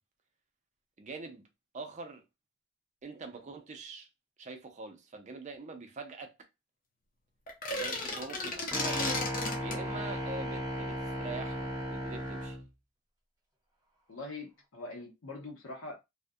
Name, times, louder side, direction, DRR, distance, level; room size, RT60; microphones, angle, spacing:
voice 1, 1.0-1.5 1.7-2.2 3.0-4.1 4.4-6.4 7.7-9.0 9.6-12.6, right 3 dB, 35° right, 0.4 m, -44 dB
sound 1, 7.5-9.8, left 2 dB, 45° left, 0.7 m, -34 dB
sound 2, 8.7-12.6, equal, 20° right, 1.0 m, -35 dB
voice 2, 14.1-16.0, left 2 dB, 85° left, 0.6 m, -43 dB
2.3 x 2.0 x 2.6 m
head